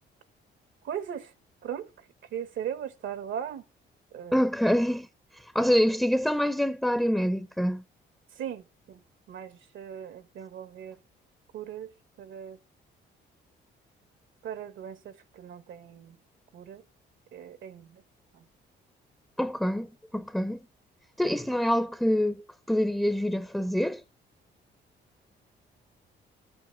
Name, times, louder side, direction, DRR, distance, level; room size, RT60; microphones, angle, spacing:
voice 1, 0.8-1.3 1.6-1.9 2.3-3.6 4.1-4.4 8.4-9.0 9.3-10.9 11.5-11.9 12.2-12.6 14.4-16.2 16.5-16.8 17.3-18.0 18.3-18.4, right 9 dB, 75° right, 1.5 m, -38 dB
voice 2, 4.3-5.1 5.5-7.8 19.4-20.6 21.2-24.0, equal, ahead, 0.7 m, -26 dB
12.5 x 7.7 x 5.6 m
cardioid pair, 90°, 20 cm